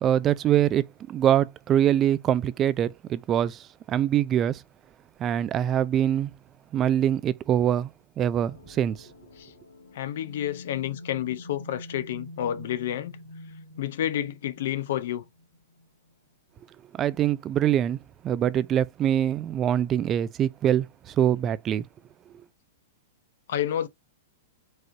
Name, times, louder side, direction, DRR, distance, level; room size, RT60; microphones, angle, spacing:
voice 1, 0.0-4.6 5.2-6.3 6.7-7.9 8.2-9.1 16.9-18.0 18.2-21.8, right 10 dB, 30° right, 0.3 m, -24 dB
sound 1, 8.4-16.1, left 1 dB, 80° left, 1.5 m, -46 dB
voice 2, 9.9-13.1 13.8-15.2 23.5-23.9, left 11 dB, 65° left, 0.7 m, -29 dB
4.7 x 3.1 x 2.6 m
hypercardioid pair, 115°, 0 cm